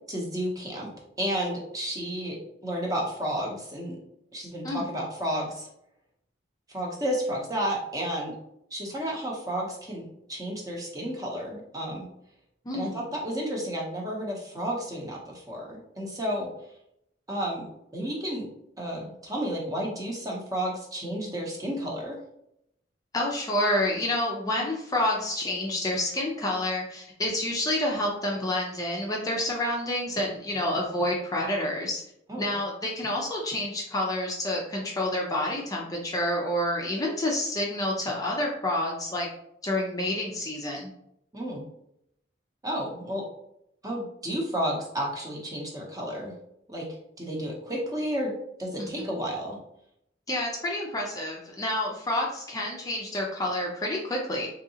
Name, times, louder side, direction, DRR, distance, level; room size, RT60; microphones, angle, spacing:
voice 1, 0.1-0.9 1.2-2.4 2.6-4.0 4.3-5.7 6.7-8.4 8.7-12.1 12.7-16.5 17.3-17.7 17.9-18.5 18.8-22.2 32.3-32.4 41.3-41.6 42.6-43.2 43.8-46.3 46.7-46.9 47.2-48.3 48.6-49.6, equal, 20° right, -2 dB, 0.8 m, -31 dB
voice 2, 12.7-13.0 23.1-32.0 32.4-39.3 39.6-40.9 48.8-49.1 50.3-54.5, left 1 dB, 20° left, -1 dB, 0.5 m, -28 dB
3.7 x 2.7 x 2.8 m, 0.77 s
head